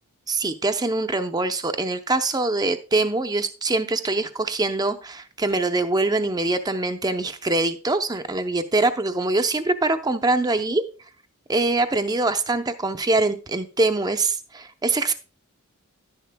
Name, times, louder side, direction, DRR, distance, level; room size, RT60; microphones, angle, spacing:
voice 1, 0.3-10.8 11.5-15.1, right 2 dB, 20° right, 9 dB, 0.6 m, -23 dB
11.0 x 10.0 x 2.2 m, 0.36 s
head